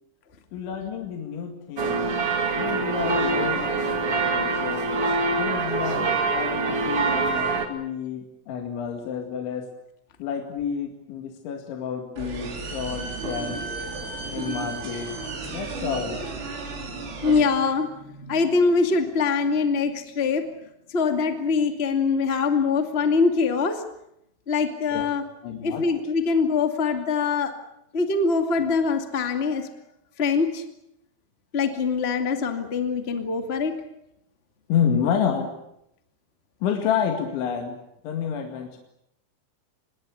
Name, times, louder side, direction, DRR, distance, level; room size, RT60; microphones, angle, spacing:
voice 1, 0.5-2.0 2.5-5.0 5.3-9.7 10.2-13.7 14.3-15.1 15.5-16.2 24.9-25.1 25.4-25.9 34.7-35.5 36.6-37.8 38.0-38.8, left 7 dB, 70° left, 4 dB, 4.3 m, -29 dB
sound 1, 1.8-7.7, right 3 dB, 45° right, 2.1 m, -24 dB
sound 2, 12.2-17.4, right 4 dB, 85° right, 7.8 m, -33 dB
voice 2, 16.7-20.4 20.9-23.8 24.5-25.2 25.6-27.5 27.9-29.7 30.2-30.6 31.5-33.7, left 4 dB, 85° left, 6 dB, 0.5 m, -23 dB
26.0 x 21.5 x 8.4 m, 0.79 s
omnidirectional pair, 5.8 m